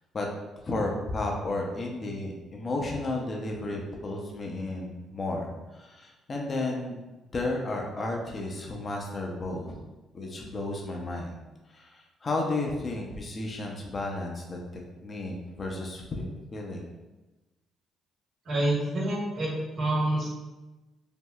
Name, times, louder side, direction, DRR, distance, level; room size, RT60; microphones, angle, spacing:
voice 1, 0.6-7.0 7.3-9.7 10.1-11.4 11.7-16.3 16.5-16.9, left 2 dB, 40° left, 0 dB, 0.5 m, -33 dB
voice 2, 18.4-20.3, right 1 dB, 55° right, -5 dB, 1.1 m, -27 dB
3.4 x 2.0 x 2.3 m, 1.1 s
supercardioid pair, 60°, 0 cm